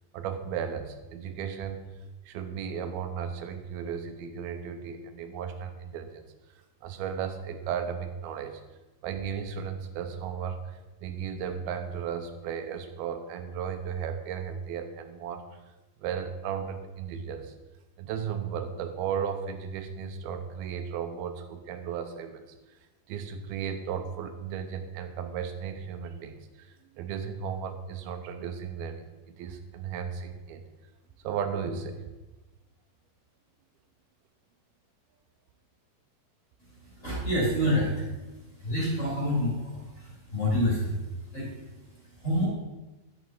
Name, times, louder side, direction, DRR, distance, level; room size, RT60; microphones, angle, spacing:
voice 1, 0.1-1.8 2.3-6.3 6.8-8.6 9.0-15.4 16.0-17.5 18.0-22.8 23.1-30.6 31.2-32.0, right 7 dB, 90° right, 7 dB, 2.7 m, -35 dB
voice 2, 36.6-42.5, equal, 20° left, -6 dB, 3.6 m, -29 dB
11.0 x 8.1 x 4.6 m, 1.1 s
omnidirectional pair, 4.2 m